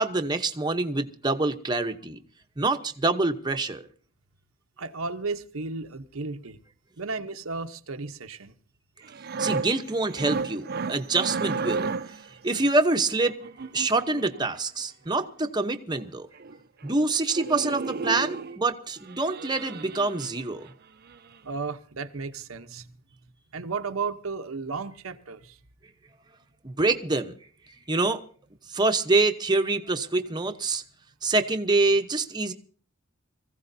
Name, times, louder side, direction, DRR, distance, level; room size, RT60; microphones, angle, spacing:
voice 1, 0.0-2.2 2.6-3.8 9.4-11.9 12.4-13.4 13.7-16.3 16.8-20.7 26.6-27.3 27.9-28.2 28.7-30.8 31.2-32.5, right 3 dB, 20° right, 0.9 m, -25 dB
voice 2, 4.8-6.6 7.0-8.6 21.4-22.9 23.5-25.6, right 4 dB, 90° right, 0.9 m, -34 dB
sound 1, 9.0-12.3 13.3-14.4 15.6-15.7 15.9-16.0 16.3-16.6 16.8-17.0 17.3-18.6 19.1-20.7 21.1-21.3, right 4 dB, 50° right, 0.6 m, -33 dB
25.0 x 15.5 x 2.7 m
head